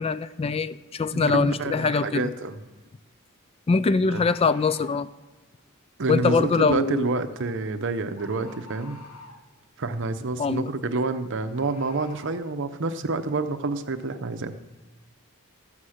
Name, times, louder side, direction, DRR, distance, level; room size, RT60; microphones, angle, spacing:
voice 1, 0.0-2.3 3.7-5.1 6.1-7.1 10.4-10.7, left 4 dB, 25° left, 14 dB, 0.3 m, -23 dB
voice 2, 1.1-2.6 4.1-4.3 6.0-9.0 9.8-14.5, right 3 dB, 55° right, 10 dB, 0.8 m, -28 dB
Bird, 2.5-2.6 4.1-5.1 7.4-7.6 8.2-9.5 11.5-12.4, left 2 dB, 80° left, 1.7 m, -47 dB
13.0 x 7.2 x 6.5 m, 1.2 s
head